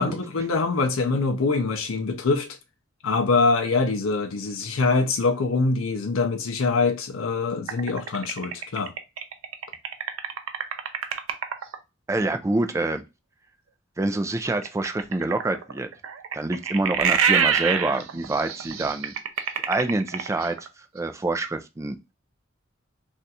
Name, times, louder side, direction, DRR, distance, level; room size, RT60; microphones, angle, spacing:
voice 1, 0.0-2.6 3.0-8.9, left 3 dB, 80° left, 0.5 m, -24 dB
sound 1, 7.7-11.8 14.6-20.7, right 7 dB, 80° right, 0.5 m, -26 dB
voice 2, 12.1-13.0 14.0-15.9 16.3-19.1 19.7-20.6 20.9-22.0, right 2 dB, 15° right, 0.3 m, -26 dB
2.6 x 2.3 x 4.0 m
head